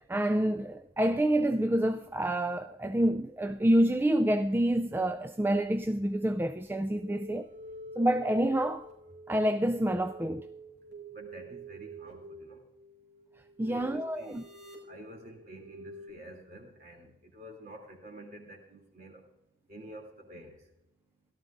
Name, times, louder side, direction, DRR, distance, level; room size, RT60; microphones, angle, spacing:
voice 1, 0.1-7.5 8.0-8.9 9.3-10.4 13.6-14.4, right 1 dB, 10° right, 0.3 m, -27 dB
sound 1, 6.9-16.1, right 1 dB, 80° right, 4.6 m, -48 dB
voice 2, 11.1-12.6 13.7-14.4 14.9-19.2 19.7-20.5, right 1 dB, 50° right, 2.8 m, -49 dB
17.0 x 12.5 x 2.5 m
head